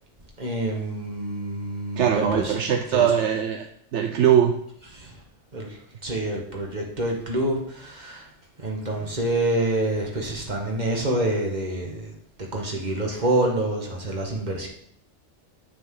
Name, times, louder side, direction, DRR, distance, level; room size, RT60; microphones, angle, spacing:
voice 1, 0.4-2.5 2.9-3.1 5.0-5.1 5.5-5.8 6.0-8.3 8.6-12.1 12.5-14.7, right 1 dB, 40° right, -1 dB, 2.0 m, -27 dB
voice 2, 2.0-4.6, right 9 dB, 75° right, 5 dB, 1.0 m, -21 dB
9.4 x 8.8 x 3.9 m, 0.69 s
omnidirectional pair, 1.2 m